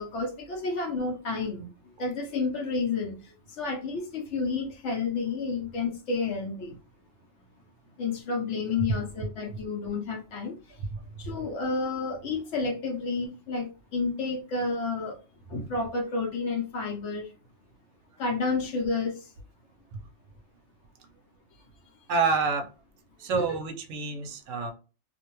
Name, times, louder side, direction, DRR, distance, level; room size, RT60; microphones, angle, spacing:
voice 1, 0.0-1.7 2.0-3.2 3.6-6.7 8.0-10.6 11.2-15.2 15.5-17.3 18.2-19.2 23.3-23.6, left 4 dB, 65° left, 0.8 m, -30 dB
voice 2, 22.1-22.7 23.2-24.7, right 4 dB, 70° right, 0.9 m, -28 dB
2.5 x 2.1 x 2.9 m
omnidirectional pair, 1.5 m